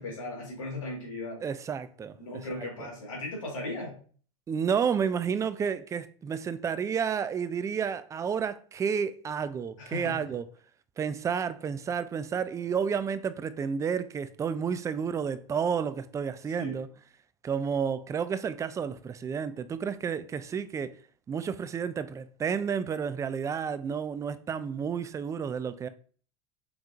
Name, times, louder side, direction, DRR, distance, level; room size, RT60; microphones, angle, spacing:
voice 1, 0.0-1.4 2.2-4.0 9.8-10.3 16.5-16.8, left 2 dB, 85° left, 1.8 m, -37 dB
voice 2, 1.4-2.9 4.5-10.4 11.0-16.9 17.4-20.9 21.3-25.9, right 7 dB, 20° right, 0.3 m, -31 dB
4.5 x 3.7 x 2.5 m
hypercardioid pair, 90°, 16 cm